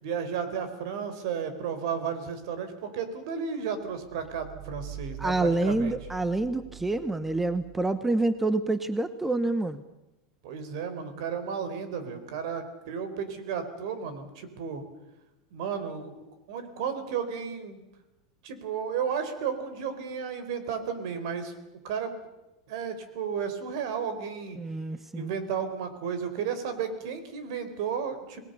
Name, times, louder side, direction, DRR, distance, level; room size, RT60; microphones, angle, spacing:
voice 1, 0.0-5.9 10.4-14.8 15.5-16.1 16.5-17.8 18.4-21.5 21.8-22.2 22.7-24.6 25.1-28.4, right 7 dB, 65° right, 10 dB, 4.2 m, -33 dB
sound 1, 3.9-8.5, right 13 dB, 30° right, 2.6 m, -44 dB
voice 2, 5.2-9.8 24.6-25.3, right 2 dB, 5° right, 12 dB, 0.9 m, -27 dB
28.0 x 20.0 x 6.8 m, 0.95 s
supercardioid pair, 145°, 3 cm